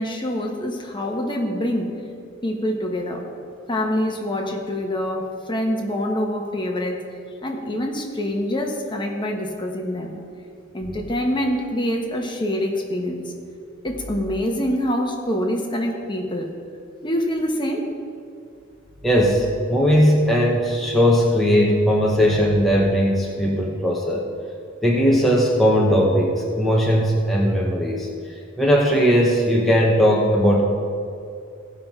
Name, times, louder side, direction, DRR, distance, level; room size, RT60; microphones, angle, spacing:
voice 1, 0.0-1.9 2.4-3.3 3.7-7.0 7.4-10.2 10.7-13.3 13.8-16.5 17.0-17.9, equal, 25° left, 1 dB, 1.2 m, -25 dB
voice 2, 19.0-24.2 24.8-28.1 28.6-30.6, equal, ahead, -4 dB, 0.9 m, -18 dB
16.5 x 5.7 x 4.6 m, 2.4 s
head